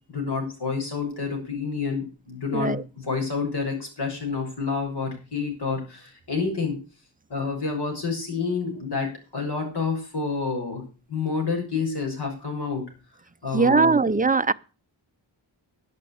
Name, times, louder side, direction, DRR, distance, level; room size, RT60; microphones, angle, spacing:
voice 1, 0.1-6.8 7.3-10.8 11.1-12.8 13.4-14.1, left 4 dB, 65° left, 6.2 m, -29 dB
voice 2, 13.5-14.5, right 4 dB, 20° right, 0.5 m, -20 dB
11.5 x 6.7 x 8.6 m
wide cardioid pair, 85°, 43 cm